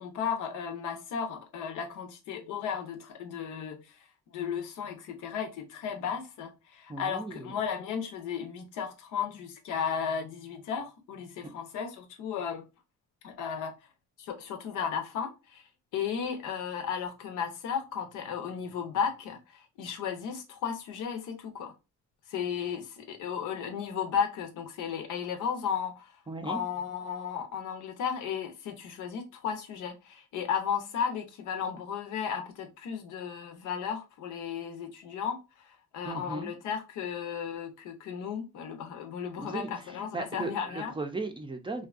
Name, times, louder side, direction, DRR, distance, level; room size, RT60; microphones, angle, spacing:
voice 1, 0.0-3.8 4.3-12.6 13.2-13.7 14.2-15.6 15.9-21.7 22.3-26.1 26.4-40.9, left 7 dB, 90° left, 0.6 m, -34 dB
voice 2, 6.9-7.5 26.3-26.6 36.0-36.5 39.4-41.9, right 3 dB, 15° right, 0.4 m, -37 dB
2.6 x 2.2 x 2.3 m
cardioid pair, 90°, 30 cm